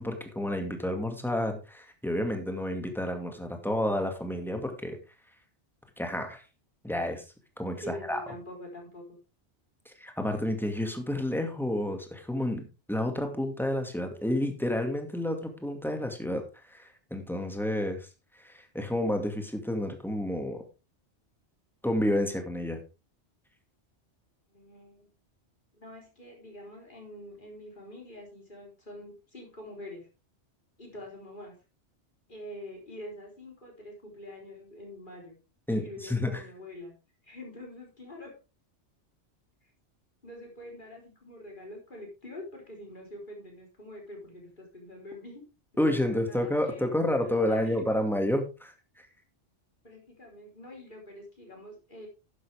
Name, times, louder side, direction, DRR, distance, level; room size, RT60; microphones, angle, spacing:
voice 1, 0.0-5.0 6.0-6.4 6.8-7.2 7.6-8.2 9.9-18.1 18.4-20.6 21.8-22.8 35.7-36.4 45.8-49.1, left 1 dB, ahead, 5 dB, 2.2 m, -30 dB
voice 2, 7.6-9.2 24.5-25.1 25.7-30.1 30.8-31.6 32.3-35.4 35.7-36.9 37.2-38.4 39.6-39.7 40.2-45.4 45.9-46.9 47.2-47.8 49.8-52.1, left 1 dB, 45° left, 0 dB, 4.4 m, -45 dB
11.5 x 9.9 x 3.5 m, 0.29 s
omnidirectional pair, 1.2 m